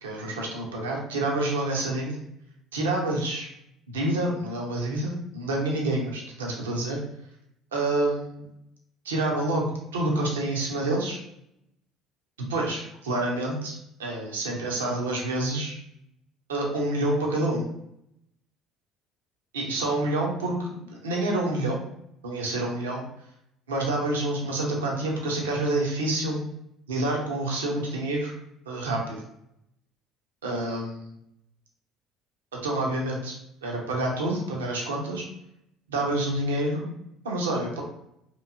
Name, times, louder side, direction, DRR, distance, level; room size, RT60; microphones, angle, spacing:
voice 1, 0.0-2.2 2.7-3.5 3.9-7.0 7.7-8.4 9.0-11.2 12.5-15.8 16.5-17.7 19.5-21.8 22.2-23.0 23.7-26.4 26.9-28.4 28.7-29.2 30.4-31.1 32.6-33.3 33.6-35.3 35.9-36.9 37.2-37.8, right 2 dB, 80° right, -1 dB, 0.6 m, -28 dB
2.9 x 2.5 x 2.4 m, 0.78 s
hypercardioid pair, 60°, 0 cm